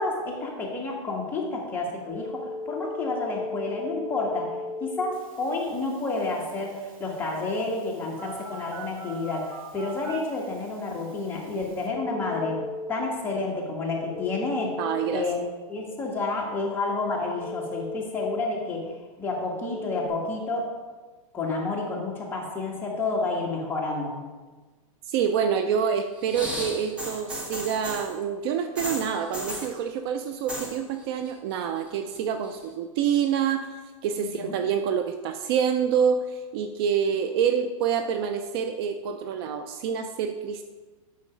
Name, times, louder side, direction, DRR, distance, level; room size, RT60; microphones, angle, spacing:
voice 1, 0.0-4.5 4.8-12.6 12.9-14.8 15.1-20.7 21.3-24.2 34.2-34.6, left 3 dB, 10° left, -3 dB, 1.7 m, -30 dB
Telephone, 2.1-12.9 14.1-15.1 17.4-18.4 19.6-20.1, left 2 dB, 75° right, 2.0 m, -38 dB
voice 2, 14.8-15.3 25.1-40.6, right 7 dB, 45° right, 8 dB, 0.5 m, -27 dB
sound 1, 26.2-28.1 28.8-29.7 30.3-30.8 31.0-31.5 31.9-32.6 33.4-33.5, equal, 5° right, 1.2 m, -35 dB
8.4 x 5.8 x 5.0 m, 1.3 s
hypercardioid pair, 145°, 18 cm